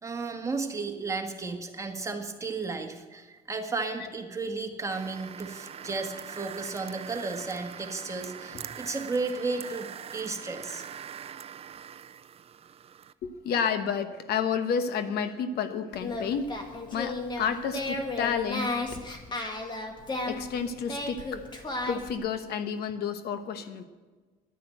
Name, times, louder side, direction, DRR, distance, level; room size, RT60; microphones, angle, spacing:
voice 1, 0.0-10.8, right 3 dB, 20° right, 3 dB, 1.8 m, -34 dB
sound 1, 4.9-13.1, right 8 dB, 35° right, 0.5 m, -43 dB
voice 2, 13.2-19.0 20.2-21.4 21.9-23.8, left 6 dB, 70° left, 9 dB, 1.1 m, -31 dB
Singing, 15.9-22.2, left 2 dB, 25° left, 2.0 m, -34 dB
11.0 x 10.0 x 7.9 m, 1.3 s
cardioid pair, 110°, 17 cm